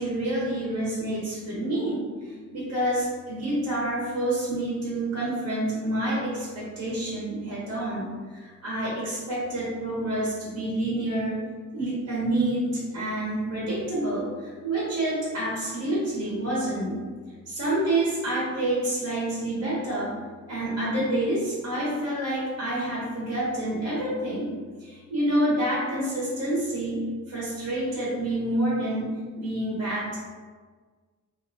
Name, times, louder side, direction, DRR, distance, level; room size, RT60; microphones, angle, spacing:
voice 1, 0.0-11.4 11.7-17.0 17.5-20.1 20.5-24.5 24.8-30.2, right 1 dB, 60° right, -7 dB, 0.9 m, -28 dB
2.6 x 2.4 x 2.5 m, 1.5 s
wide cardioid pair, 150°, 30 cm